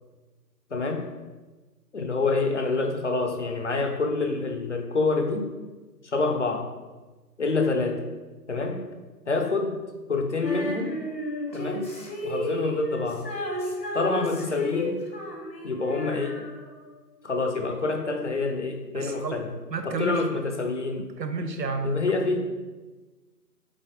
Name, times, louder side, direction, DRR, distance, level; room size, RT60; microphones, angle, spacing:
voice 1, 0.7-1.1 1.9-5.5 6.0-6.7 7.4-8.0 8.5-8.8 9.3-9.8 10.1-11.0 11.5-11.9 12.2-13.3 13.9-15.0 15.6-16.4 17.2-19.5 19.8-21.1 21.8-22.5, left 3 dB, 45° left, 5 dB, 0.6 m, -27 dB
Female singing, 10.4-16.9, equal, 90° left, 1.6 m, -33 dB
voice 2, 18.9-19.4 19.7-20.2 21.0-22.1, right 3 dB, 85° right, 7 dB, 0.9 m, -31 dB
7.7 x 3.6 x 3.5 m, 1.2 s
figure-of-eight pair, 155°, 49 cm